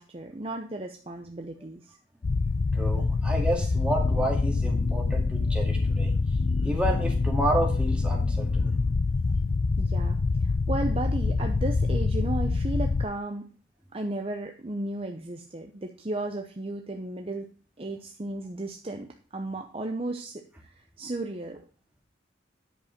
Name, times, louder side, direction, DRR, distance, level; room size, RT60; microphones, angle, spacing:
voice 1, 0.0-2.0 9.8-13.5 13.9-17.5 17.8-21.6, right 2 dB, 30° right, 4 dB, 0.7 m, -34 dB
sound 1, 2.2-13.1, left 3 dB, 45° left, 0.4 m, -25 dB
voice 2, 2.7-6.2 6.6-8.8, right 1 dB, 5° right, 0 dB, 2.0 m, -30 dB
10.0 x 5.3 x 5.8 m, 0.39 s
head